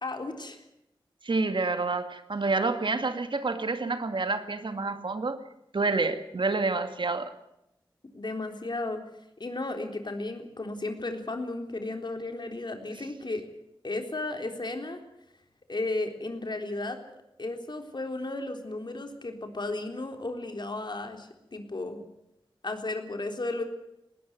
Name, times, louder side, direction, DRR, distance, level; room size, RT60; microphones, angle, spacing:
voice 1, 0.0-0.6 8.1-9.0 9.4-13.5 13.8-15.0 15.7-17.0 17.4-22.0 22.6-23.6, left 2 dB, 55° left, 5 dB, 3.8 m, -34 dB
voice 2, 1.2-5.4 5.7-7.3, right 3 dB, 65° right, 8 dB, 2.1 m, -28 dB
20.0 x 18.0 x 9.5 m, 0.81 s
cardioid pair, 45°, 9 cm